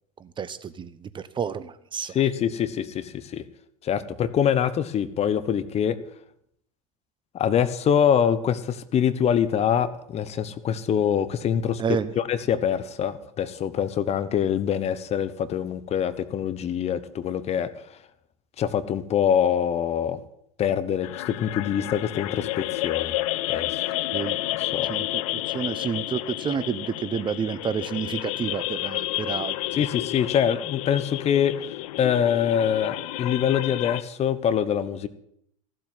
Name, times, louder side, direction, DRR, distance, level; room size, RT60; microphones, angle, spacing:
voice 1, 0.2-2.1 11.8-12.1 24.1-24.4 24.9-29.6, right 7 dB, 25° right, 14 dB, 0.9 m, -30 dB
voice 2, 2.1-3.4 3.8-6.0 7.3-11.8 12.2-17.7 18.6-20.2 20.6-23.2 23.5-23.9 24.6-24.9 29.7-31.5 32.0-35.1, left 8 dB, 35° left, 14 dB, 1.2 m, -24 dB
sound 1, 21.0-34.0, left 17 dB, 65° left, 0.7 m, -31 dB
15.0 x 7.7 x 9.6 m, 0.72 s
hypercardioid pair, 95°, 19 cm